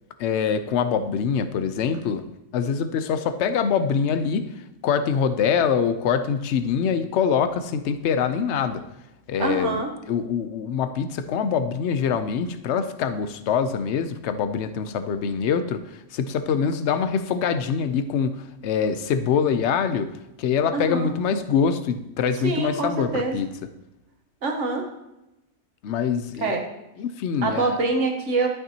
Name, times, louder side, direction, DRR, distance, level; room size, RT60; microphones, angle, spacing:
voice 1, 0.2-2.2 2.5-4.5 4.8-8.8 9.3-9.8 10.1-15.8 16.1-20.1 20.4-23.5 25.8-26.5 27.0-27.8, left 6 dB, 70° left, 10 dB, 0.9 m, -24 dB
voice 2, 9.4-9.9 20.7-21.1 22.4-23.4 24.4-24.8 26.4-26.6 27.4-28.5, right 3 dB, 75° right, 2 dB, 1.5 m, -25 dB
12.0 x 6.0 x 2.8 m, 0.94 s
omnidirectional pair, 1.2 m